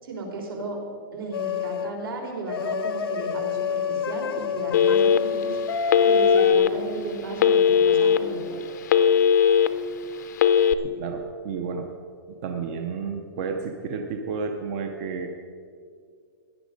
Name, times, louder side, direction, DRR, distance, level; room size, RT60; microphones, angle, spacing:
voice 1, 0.0-0.8 1.1-5.6 6.0-8.6, right 2 dB, 70° right, 1 dB, 3.8 m, -34 dB
sound 1, 1.3-1.9 2.5-6.5, left 5 dB, 80° left, 0.9 m, -28 dB
Telephone, 4.7-5.4 5.9-6.7 7.4-8.2 8.6-9.7 10.3-10.7, left 7 dB, 50° left, 0.7 m, -18 dB
voice 2, 10.8-11.9 12.3-15.3, right 5 dB, 30° right, 4 dB, 0.7 m, -31 dB
16.5 x 10.5 x 5.2 m, 2.3 s
hypercardioid pair, 180°, 12 cm